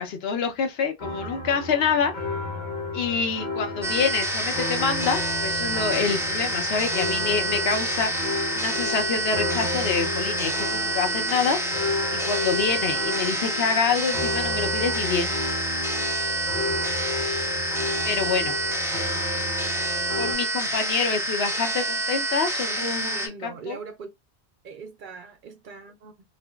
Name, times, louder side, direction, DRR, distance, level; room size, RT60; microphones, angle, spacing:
voice 1, 0.0-2.1 2.9-8.1 8.5-11.6 12.1-15.3 18.0-18.6 20.2-23.8, left 5 dB, 75° left, 0.9 m, -26 dB
sound 1, 1.0-20.3, left 2 dB, 50° left, 0.9 m, -32 dB
sound 2, 3.8-23.3, right 2 dB, 5° right, 0.3 m, -28 dB
voice 2, 22.7-24.1 24.6-26.1, right 6 dB, 60° right, 0.6 m, -40 dB
2.8 x 2.5 x 2.2 m
omnidirectional pair, 1.1 m